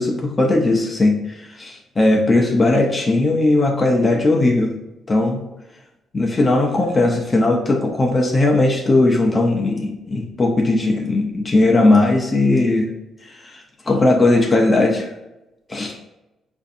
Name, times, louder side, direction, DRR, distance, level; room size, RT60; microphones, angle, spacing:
voice 1, 0.0-4.7 5.1-5.4 6.1-12.9 13.3-15.1 15.7-15.9, left 2 dB, 30° left, 1 dB, 0.6 m, -18 dB
4.4 x 2.6 x 2.6 m, 0.94 s
cardioid pair, 90°, 0 cm